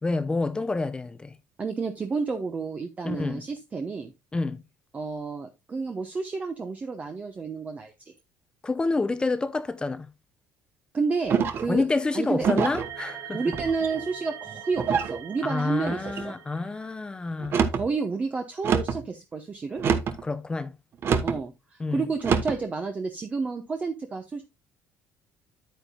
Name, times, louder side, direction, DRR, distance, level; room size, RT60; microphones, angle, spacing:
voice 1, 0.0-1.4 3.0-3.4 4.3-4.6 8.6-10.1 11.7-13.6 15.4-17.6 20.2-20.7 21.8-22.1, left 3 dB, 15° left, 0.7 m, -28 dB
voice 2, 1.6-4.1 4.9-8.1 10.9-11.8 12.1-12.5 13.3-16.3 17.7-19.8 21.2-24.4, right 4 dB, 25° right, 1.0 m, -30 dB
sound 1, 11.3-11.8 12.4-12.9 13.5-14.0 14.8-15.2 15.8-16.3 17.4-17.9 18.6-19.0 19.8-20.2 21.0-21.4 22.2-22.6, right 6 dB, 45° right, 1.1 m, -25 dB
sound 2, 12.8-17.1, right 10 dB, 75° right, 2.4 m, -42 dB
8.9 x 8.9 x 2.3 m
cardioid pair, 115°, 5 cm